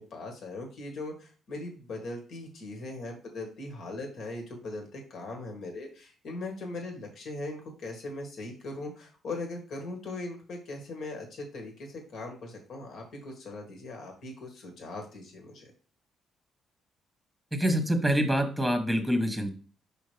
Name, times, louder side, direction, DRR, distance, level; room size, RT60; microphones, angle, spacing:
voice 1, 0.1-15.7, left 2 dB, 70° left, 2 dB, 2.0 m, -40 dB
voice 2, 17.5-19.5, equal, ahead, 6 dB, 1.3 m, -26 dB
5.5 x 5.1 x 3.4 m, 0.37 s
cardioid pair, 90°, 0 cm